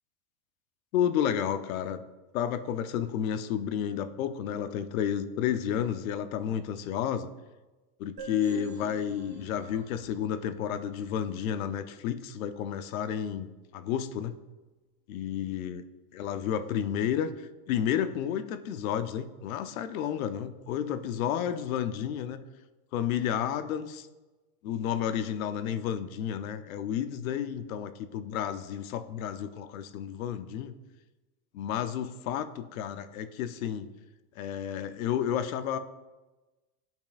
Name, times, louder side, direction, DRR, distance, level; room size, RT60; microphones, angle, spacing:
voice 1, 0.9-2.0 2.3-7.3 8.0-14.4 15.1-15.8 16.1-22.4 22.9-24.1 24.6-30.7 31.5-33.9 34.4-35.8, left 9 dB, 70° left, 11 dB, 0.7 m, -31 dB
sound 1, 8.2-11.7, right 4 dB, 25° right, 1.1 m, -47 dB
10.5 x 5.3 x 2.4 m, 1.2 s
supercardioid pair, 165°, 42 cm